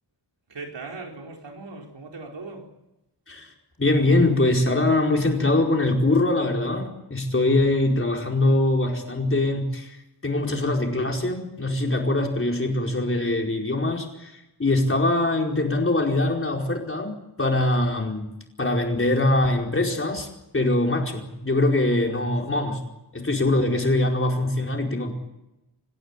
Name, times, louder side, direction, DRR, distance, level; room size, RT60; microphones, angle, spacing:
voice 1, 0.5-2.7, right 3 dB, 90° right, 1 dB, 4.8 m, -38 dB
voice 2, 3.8-17.1 17.4-18.3 18.6-20.3 20.5-22.8 23.1-25.1, left 2 dB, 30° left, 1 dB, 4.8 m, -23 dB
27.5 x 16.0 x 9.9 m, 0.92 s
wide cardioid pair, 120°, 42 cm